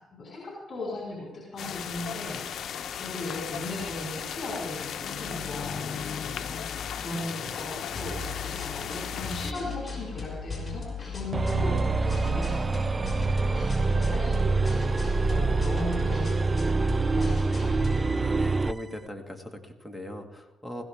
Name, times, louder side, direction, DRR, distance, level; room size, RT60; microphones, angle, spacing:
voice 1, 0.0-8.2 8.6-13.1 13.5-17.8, left 2 dB, 45° left, -4 dB, 5.6 m, -38 dB
sound 1, 1.6-9.5, left 8 dB, 65° left, 0.9 m, -35 dB
sound 2, 7.9-18.2, left 2 dB, 20° left, 6.4 m, -37 dB
sound 3, 11.3-18.8, right 3 dB, 30° right, 0.4 m, -25 dB
voice 2, 18.1-20.8, left 1 dB, ahead, 2 dB, 2.0 m, -39 dB
20.5 x 16.5 x 3.6 m, 1.1 s
cardioid pair, 90°, 0 cm